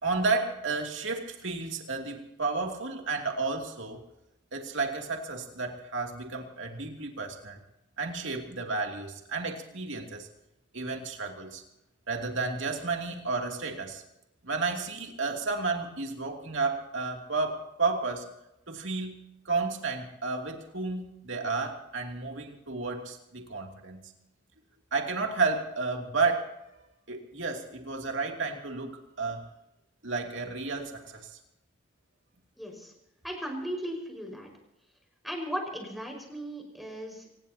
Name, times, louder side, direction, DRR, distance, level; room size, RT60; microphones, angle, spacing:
voice 1, 0.0-4.0 4.5-7.6 8.0-10.3 10.7-11.6 12.1-14.0 14.4-18.2 18.7-19.2 19.4-24.0 24.9-26.8 27.1-29.5 30.0-31.4, right 4 dB, 65° right, 2 dB, 2.8 m, -32 dB
voice 2, 32.6-32.9 33.2-34.5 35.2-37.3, equal, ahead, 1 dB, 5.3 m, -37 dB
25.0 x 20.0 x 2.9 m, 0.86 s
head